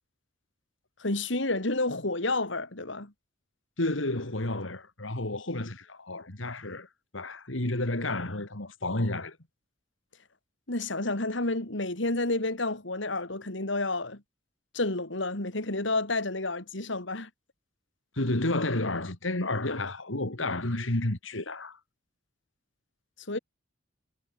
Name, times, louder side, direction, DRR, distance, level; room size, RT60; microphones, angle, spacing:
voice 1, 1.0-3.1 10.7-14.2 14.7-17.3 23.3-23.4, left 2 dB, 70° left, 3.2 m, -30 dB
voice 2, 3.8-6.9 7.1-9.4 18.2-21.8, left 2 dB, 85° left, 3.1 m, -31 dB
head